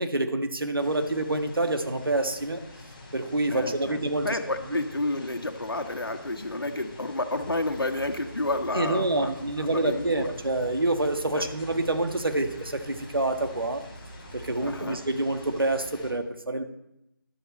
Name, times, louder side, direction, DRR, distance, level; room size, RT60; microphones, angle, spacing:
voice 1, 0.0-2.6 3.1-4.3 8.7-13.8 14.3-16.7, right 2 dB, 80° right, 7 dB, 1.6 m, -27 dB
sound 1, 0.8-16.1, left 2 dB, 20° left, 2.5 m, -47 dB
voice 2, 3.5-9.3 9.6-10.3 11.3-11.4 14.6-15.0, left 2 dB, 80° left, 4 dB, 1.9 m, -30 dB
sound 2, 7.4-14.8, right 3 dB, 30° right, 1.5 m, -47 dB
13.5 x 11.5 x 4.3 m, 0.85 s
figure-of-eight pair, 165°, 12 cm